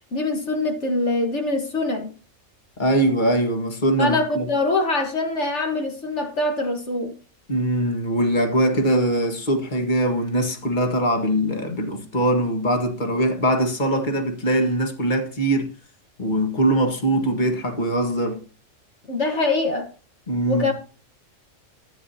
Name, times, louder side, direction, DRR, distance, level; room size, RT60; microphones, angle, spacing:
voice 1, 0.1-2.1 4.0-7.1 19.1-19.9 20.5-20.7, left 2 dB, 65° left, 1.8 m, -24 dB
voice 2, 2.8-4.5 7.5-15.7 16.2-18.4 20.3-20.7, right 1 dB, 35° left, 1.9 m, -22 dB
13.5 x 9.3 x 2.9 m
omnidirectional pair, 1.3 m